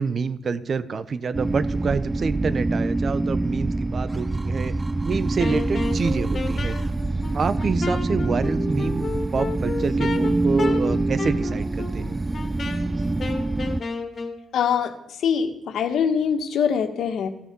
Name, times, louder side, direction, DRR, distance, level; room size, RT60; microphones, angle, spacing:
voice 1, 0.0-4.7 5.0-6.8 7.3-12.2, right 5 dB, 45° right, 14 dB, 1.1 m, -27 dB
sound 1, 1.3-13.8, right 2 dB, 20° right, 0.6 m, -25 dB
Wind instrument woodwind instrument, 5.4-14.4, left 4 dB, 40° left, 2.7 m, -32 dB
voice 2, 14.5-14.9 15.2-17.3, left 7 dB, 70° left, 7 dB, 1.9 m, -23 dB
14.5 x 13.0 x 7.1 m, 0.84 s
cardioid pair, 90°, 0 cm